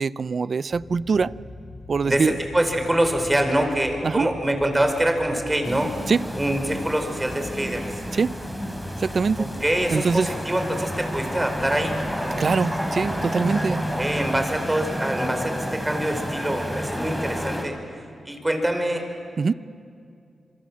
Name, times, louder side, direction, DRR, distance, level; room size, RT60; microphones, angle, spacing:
voice 1, 0.0-1.3 1.9-2.3 4.0-4.3 6.1-6.2 8.1-8.4 9.0-9.5 9.9-10.3 12.4-13.8 19.4-19.5, right 5 dB, 60° right, 19 dB, 0.5 m, -23 dB
sound 1, 0.7-14.5, left 2 dB, 65° left, 7.4 m, -42 dB
voice 2, 2.0-6.0 6.4-7.9 9.4-12.0 13.7-17.8 18.2-19.0, right 1 dB, 20° right, 5 dB, 5.1 m, -25 dB
sound 2, 5.6-17.6, equal, 5° left, 5.3 m, -30 dB
27.0 x 23.0 x 7.6 m, 2.3 s
supercardioid pair, 45°, 0 cm